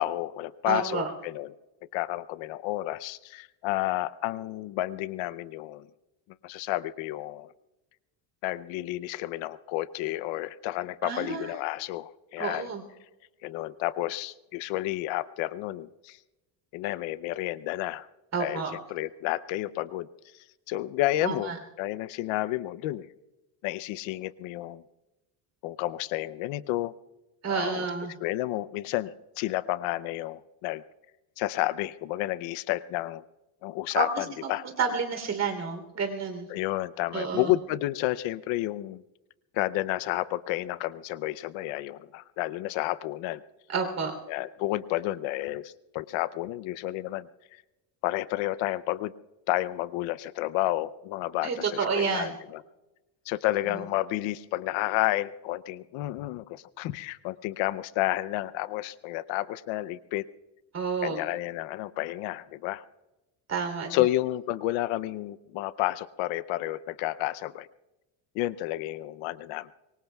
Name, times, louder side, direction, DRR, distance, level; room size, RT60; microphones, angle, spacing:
voice 1, 0.0-1.5 1.9-5.9 6.4-7.5 8.4-12.7 13.4-16.2 16.7-18.1 18.4-18.6 18.9-20.1 20.7-21.5 21.8-23.1 23.6-24.8 25.6-26.9 27.5-27.9 28.2-30.8 31.4-33.2 33.6-34.6 36.5-39.0 39.5-43.4 44.3-47.3 48.0-49.1 49.5-52.6 53.3-60.2 61.0-62.8 63.9-67.7 68.3-69.7, left 16 dB, 75° left, 16 dB, 0.7 m, -31 dB
voice 2, 0.7-1.1 11.0-11.5 12.4-12.8 18.3-18.7 21.2-21.6 27.4-28.1 33.9-36.5 37.1-37.5 43.7-44.1 51.4-52.3 53.7-53.8 60.7-61.2 63.5-64.1, right 5 dB, 35° right, 4 dB, 3.3 m, -30 dB
25.0 x 23.5 x 2.3 m, 1.0 s
cardioid pair, 130°, 46 cm